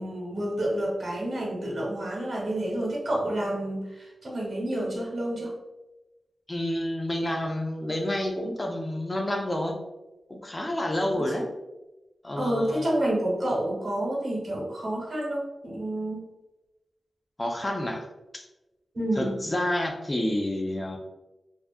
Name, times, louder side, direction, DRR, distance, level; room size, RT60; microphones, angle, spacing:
voice 1, 0.0-5.5 11.1-11.2 12.4-16.2 18.9-19.4, right 1 dB, 50° right, -4 dB, 1.0 m, -29 dB
voice 2, 6.5-9.8 10.3-11.5 12.2-12.8 17.4-18.1 18.3-18.4 19.2-21.0, left 1 dB, 20° left, 2 dB, 0.4 m, -29 dB
2.6 x 2.4 x 2.3 m, 1.0 s
wide cardioid pair, 155°, 0 cm